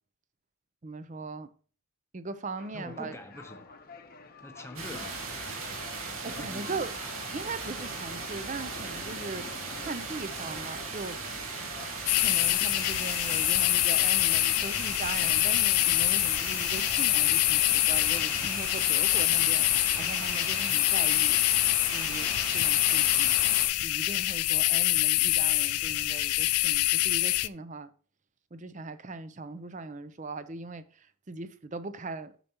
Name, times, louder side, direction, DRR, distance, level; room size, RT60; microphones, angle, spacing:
voice 1, 0.8-1.5 2.1-3.2 6.2-6.9 7.3-9.4 9.8-11.2 12.1-19.7 20.0-21.4 21.9-23.4 23.8-27.9 28.5-32.3, right 3 dB, 35° right, 0.5 m, -39 dB
sound 1, 2.6-21.5, left 4 dB, 40° left, 0.8 m, -51 dB
voice 2, 2.7-3.8 4.4-5.3 6.2-6.9, left 1 dB, 10° left, 0.7 m, -45 dB
sound 2, 4.8-23.7, right 4 dB, 70° right, 1.9 m, -38 dB
sound 3, 12.1-27.5, left 18 dB, 90° left, 0.4 m, -25 dB
9.0 x 6.6 x 2.9 m
head